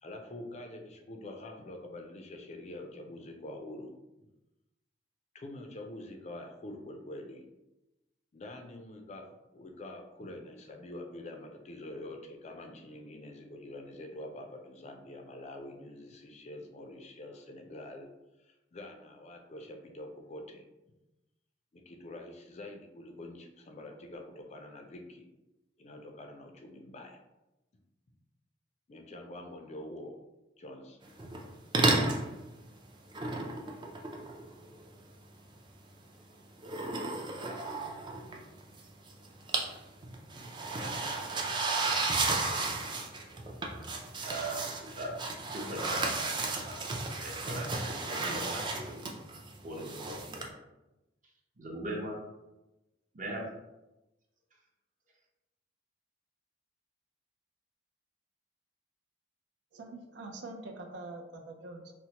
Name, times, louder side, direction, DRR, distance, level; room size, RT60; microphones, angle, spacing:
voice 1, 0.0-4.3 5.3-7.4 8.3-9.3 9.5-18.1 18.4-20.6 21.7-25.3 25.8-27.2 28.9-30.1 30.6-31.0, left 1 dB, 40° left, 3 dB, 0.4 m, -46 dB
sound 1, 31.2-31.5 31.7-32.3 33.1-34.8 36.6-38.8 39.1-39.8 40.0-50.5, right 3 dB, 25° right, 0.4 m, -33 dB
voice 2, 44.2-45.2 45.5-46.7 47.2-49.0 49.6-50.4 51.6-52.2 53.1-53.5, right 1 dB, 45° right, -1 dB, 0.8 m, -39 dB
voice 3, 59.7-61.9, right 2 dB, 80° right, 3 dB, 0.5 m, -44 dB
4.2 x 2.1 x 2.8 m, 0.99 s
head